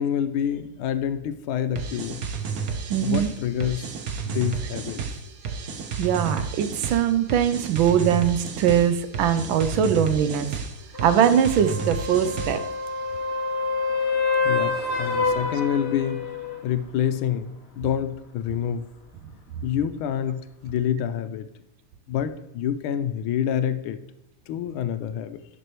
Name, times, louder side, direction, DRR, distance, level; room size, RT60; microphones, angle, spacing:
voice 1, 0.0-2.2 3.0-3.9 4.2-5.0 14.4-18.8 19.6-21.5 22.1-24.0 24.5-25.4, left 9 dB, 80° left, 10 dB, 1.4 m, -27 dB
sound 1, 1.8-12.8, right 5 dB, 60° right, 1.0 m, -32 dB
voice 2, 2.9-3.3 6.0-10.5 11.0-12.6, right 9 dB, 75° right, 11 dB, 1.3 m, -21 dB
sound 2, 10.9-16.6 20.7-20.8, left 4 dB, 40° left, 1.0 m, -27 dB
9.5 x 6.2 x 3.1 m, 0.87 s
omnidirectional pair, 2.3 m